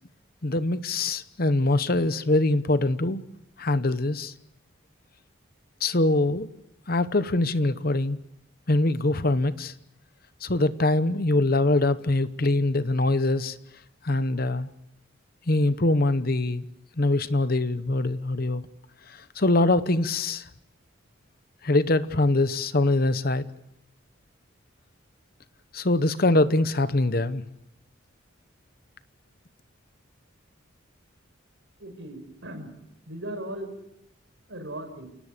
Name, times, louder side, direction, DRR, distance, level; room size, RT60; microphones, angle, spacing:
voice 1, 0.4-3.2 3.6-4.3 5.8-6.5 6.9-8.2 8.7-9.7 10.4-13.6 14.0-14.7 15.5-16.6 17.0-18.6 19.1-20.4 21.6-23.5 25.7-27.4, left 2 dB, 45° left, 13 dB, 0.9 m, -23 dB
voice 2, 31.8-32.7 33.1-33.7 34.5-35.1, right 1 dB, 65° right, 7 dB, 5.1 m, -37 dB
29.0 x 18.5 x 6.7 m, 0.83 s
head